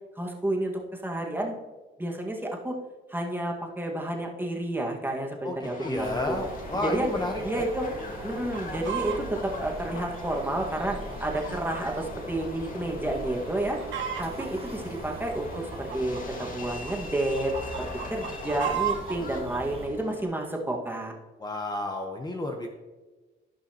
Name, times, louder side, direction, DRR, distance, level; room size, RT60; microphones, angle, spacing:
voice 1, 0.2-1.6 2.0-2.7 3.1-6.4 6.7-7.1 7.4-7.9 8.2-13.8 14.2-21.1, right 1 dB, 10° right, 0 dB, 1.7 m, -30 dB
voice 2, 5.4-7.6 21.4-22.7, left 2 dB, 20° left, 2 dB, 1.0 m, -32 dB
Subway metro underground, 5.6-20.2, left 3 dB, 45° left, 1.8 m, -41 dB
sound 1, 6.0-19.9, right 3 dB, 30° right, 1.3 m, -42 dB
Chicken rooster, 8.3-9.2 9.8-12.1 12.4-12.5 13.0-13.3 13.6-14.5 15.1-16.9 17.4-19.2 19.8-19.9, right 9 dB, 70° right, 1.3 m, -34 dB
16.5 x 5.7 x 2.9 m, 1.3 s
cardioid pair, 90°, 20 cm